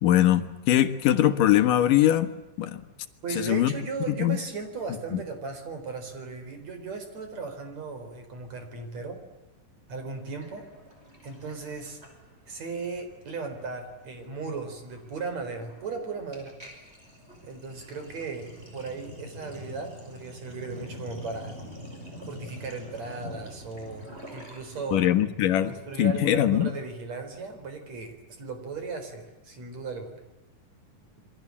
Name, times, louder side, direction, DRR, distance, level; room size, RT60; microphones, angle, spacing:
voice 1, 0.0-2.3 2.6-2.8 3.4-3.7 4.1-4.4 5.1-5.2 24.9-25.7 26.0-26.7, left 12 dB, 80° left, 11 dB, 3.0 m, -22 dB
voice 2, 3.2-9.2 9.9-10.7 11.2-12.0 12.5-16.5 17.4-21.6 22.3-25.1 25.6-30.2, right 4 dB, 55° right, 7 dB, 5.5 m, -36 dB
Sink (filling or washing), 10.4-12.6 12.9-13.2 13.4-24.8, equal, 15° right, 6.1 m, -45 dB
28.0 x 23.5 x 8.5 m, 1.0 s
omnidirectional pair, 3.8 m